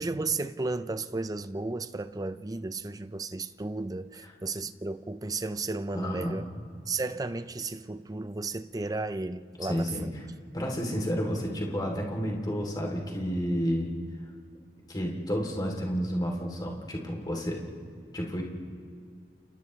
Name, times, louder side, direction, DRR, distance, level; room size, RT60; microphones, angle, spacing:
voice 1, 0.0-6.4 6.9-10.2, right 3 dB, 20° right, 0.5 m, -34 dB
voice 2, 5.9-6.5 9.6-10.1 10.5-13.9 14.9-17.6 18.1-18.4, equal, 25° left, 3.0 m, -31 dB
29.5 x 29.5 x 3.2 m
head